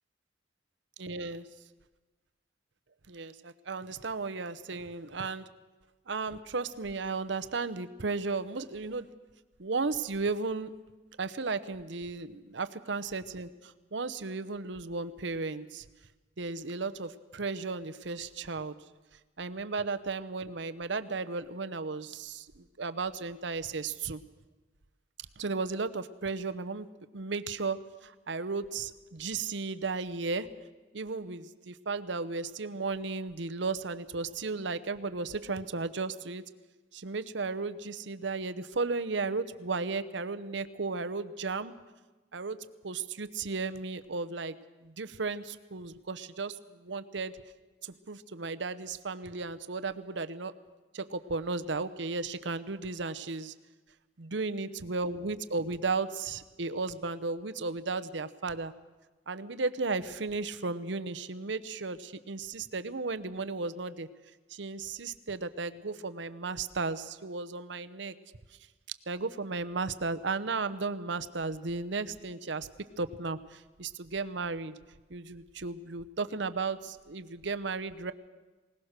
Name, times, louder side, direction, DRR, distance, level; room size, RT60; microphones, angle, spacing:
voice 1, 1.0-1.5 3.1-5.4 6.1-9.1 9.6-10.7 11.2-15.8 16.4-18.7 19.4-24.2 25.4-26.9 27.1-30.5 30.9-36.4 36.9-41.7 42.3-44.6 44.8-47.4 47.8-50.5 50.9-53.5 54.2-58.7 59.3-64.1 64.5-68.2 69.1-72.7 73.0-74.8 75.1-78.1, right 4 dB, 65° right, 11 dB, 0.9 m, -35 dB
20.5 x 19.5 x 6.6 m, 1.2 s
head